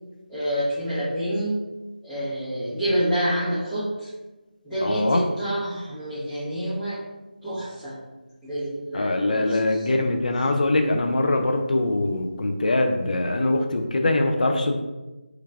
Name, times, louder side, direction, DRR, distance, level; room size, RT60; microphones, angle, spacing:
voice 1, 0.3-1.5 2.0-4.1 4.6-7.0 7.4-8.0 8.4-9.9, equal, 5° left, -15 dB, 0.6 m, -28 dB
voice 2, 4.8-5.2 8.9-14.8, left 2 dB, 55° left, 4 dB, 0.4 m, -23 dB
3.2 x 2.2 x 3.5 m, 1.1 s
figure-of-eight pair, 165°, 5 cm